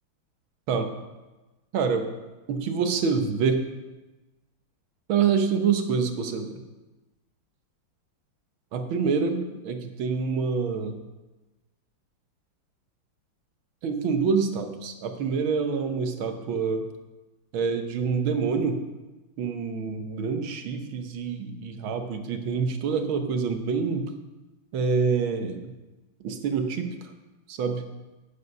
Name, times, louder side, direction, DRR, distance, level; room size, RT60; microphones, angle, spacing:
voice 1, 1.7-2.1 2.5-3.6 5.1-6.5 8.7-11.0 13.8-16.8 17.5-18.8 19.4-24.1 24.7-25.6 26.2-26.9 27.5-27.8, right 5 dB, 75° right, 6 dB, 1.8 m, -26 dB
11.0 x 8.7 x 5.4 m, 1.1 s
omnidirectional pair, 2.2 m